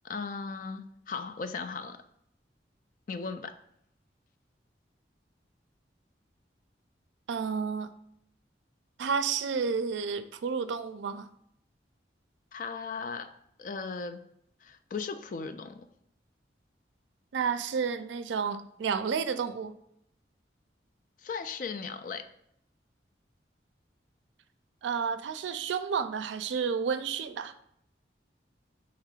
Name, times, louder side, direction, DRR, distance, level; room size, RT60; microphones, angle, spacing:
voice 1, 0.0-2.0 3.1-3.5 12.5-13.3 13.6-14.2 14.6-15.9 21.2-22.2, left 5 dB, 45° left, 9 dB, 0.3 m, -37 dB
voice 2, 7.3-7.9 9.0-11.3 17.3-19.7 24.8-27.5, right 6 dB, 90° right, 11 dB, 0.4 m, -31 dB
3.7 x 2.9 x 4.9 m, 0.71 s
head